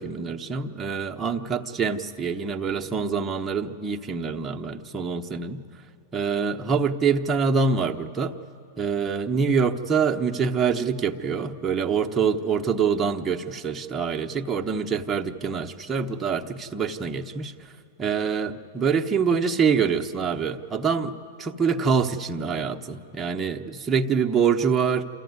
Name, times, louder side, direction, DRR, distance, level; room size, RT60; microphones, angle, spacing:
voice 1, 0.0-5.6 6.1-8.3 8.8-17.5 18.0-21.1 21.4-25.1, right 6 dB, 20° right, 2 dB, 1.0 m, -25 dB
26.5 x 14.0 x 9.5 m, 2.7 s
hypercardioid pair, 115°, 0 cm